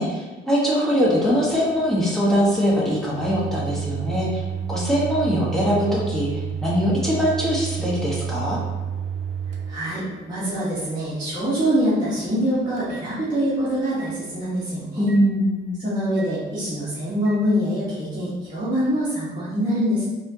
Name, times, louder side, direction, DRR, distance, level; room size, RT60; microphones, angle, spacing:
voice 1, 0.0-8.6 15.0-15.7, equal, ahead, -6 dB, 1.3 m, -22 dB
Microwave oven, 1.0-13.6 14.0-14.1 15.1-15.2 16.2-16.3 17.2-17.4, right 8 dB, 75° right, 0.5 m, -32 dB
voice 2, 9.7-15.1 15.8-20.0, equal, 20° right, -12 dB, 1.3 m, -24 dB
4.2 x 2.6 x 2.8 m, 1.2 s
cardioid pair, 90°, 20 cm